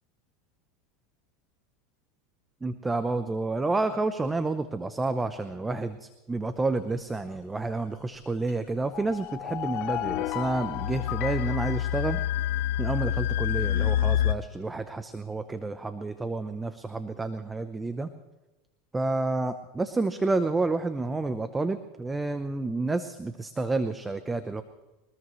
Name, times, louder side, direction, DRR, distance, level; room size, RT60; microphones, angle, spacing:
voice 1, 2.6-12.2 12.8-18.1 18.9-24.6, right 3 dB, 10° right, 10 dB, 0.8 m, -29 dB
sound 1, 8.9-12.8, left 15 dB, 45° left, 0.4 m, -35 dB
sound 2, 9.9-14.3, left 11 dB, 75° left, 0.9 m, -28 dB
23.0 x 20.0 x 3.2 m, 1.1 s
supercardioid pair, 140°, 0 cm